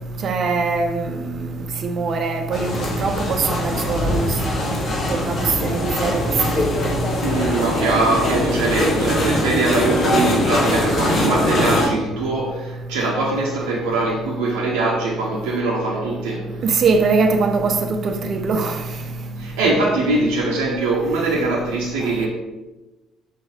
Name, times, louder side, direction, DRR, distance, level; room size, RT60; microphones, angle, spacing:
voice 1, 0.2-1.1 1.8-2.7 3.0-4.3 5.1-5.3 5.6-6.2 6.8-6.9 16.6-18.8, right 4 dB, 50° right, 0.8 m, -21 dB
sound 1, 2.5-11.9, left 1 dB, 45° left, 1.6 m, -22 dB
voice 2, 7.2-16.4 19.4-22.3, right 2 dB, 70° right, 0.9 m, -22 dB
6.4 x 4.3 x 4.8 m
figure-of-eight pair, 50°, 0 cm